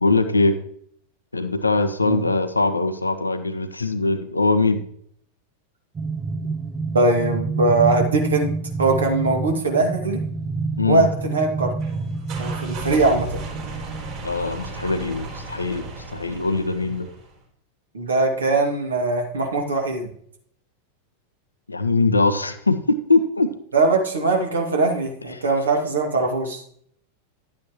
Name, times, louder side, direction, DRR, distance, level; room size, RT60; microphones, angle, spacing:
voice 1, 0.0-0.5 1.3-4.8 10.8-11.1 14.2-15.8 16.1-17.1 21.7-23.5 25.3-25.4, left 3 dB, 80° left, 9 dB, 1.0 m, -21 dB
sound 1, 6.0-14.2, right 4 dB, 20° right, 0.5 m, -28 dB
voice 2, 6.9-8.5 8.8-10.2 10.8-11.7 12.4-13.4 17.9-20.1 23.7-26.6, right 3 dB, 70° right, 1 dB, 2.4 m, -21 dB
sound 2, 11.8-17.4, right 2 dB, 45° right, 4.0 m, -35 dB
11.5 x 8.8 x 3.1 m, 0.64 s
figure-of-eight pair, 90°, 0 cm